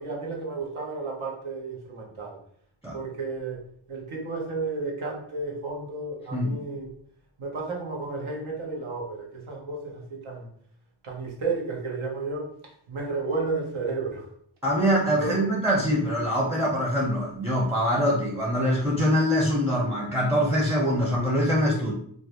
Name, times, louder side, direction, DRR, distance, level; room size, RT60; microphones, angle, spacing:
voice 1, 0.0-2.4 2.9-6.9 7.4-10.5 11.0-12.5 12.9-14.3 15.2-15.4, right 3 dB, 80° right, -1 dB, 0.8 m, -32 dB
voice 2, 6.3-6.6 14.6-21.9, equal, 5° right, -2 dB, 0.5 m, -24 dB
2.3 x 2.0 x 2.8 m, 0.63 s
cardioid pair, 50°, 48 cm